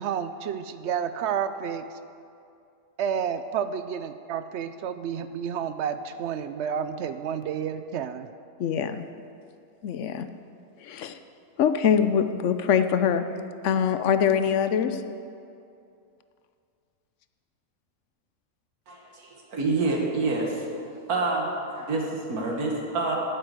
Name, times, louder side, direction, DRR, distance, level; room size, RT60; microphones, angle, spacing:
voice 1, 0.0-1.8 3.0-8.3, right 7 dB, 65° right, 11 dB, 0.7 m, -30 dB
voice 2, 8.6-9.0 9.8-10.3 10.8-11.1 11.6-13.2 13.6-15.0, left 8 dB, 65° left, 10 dB, 0.9 m, -23 dB
voice 3, 18.9-20.6 21.1-23.2, right 3 dB, 85° right, -1 dB, 2.1 m, -27 dB
9.5 x 7.8 x 8.1 m, 2.5 s
omnidirectional pair, 1.5 m